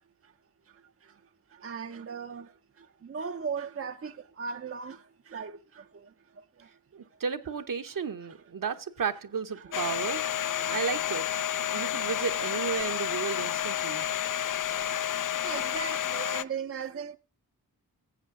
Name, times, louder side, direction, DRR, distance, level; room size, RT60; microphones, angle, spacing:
voice 1, 1.6-2.4 3.1-4.1 4.4-5.0 5.3-5.5 15.4-17.1, right 6 dB, 35° right, 0.6 m, -36 dB
voice 2, 6.9-10.2 10.7-11.3 11.7-14.0, right 6 dB, 55° right, 0.9 m, -33 dB
Domestic sounds home sounds, 9.7-16.4, left 10 dB, 55° left, 0.5 m, -30 dB
17.5 x 7.5 x 3.7 m
cardioid pair, 40°, 38 cm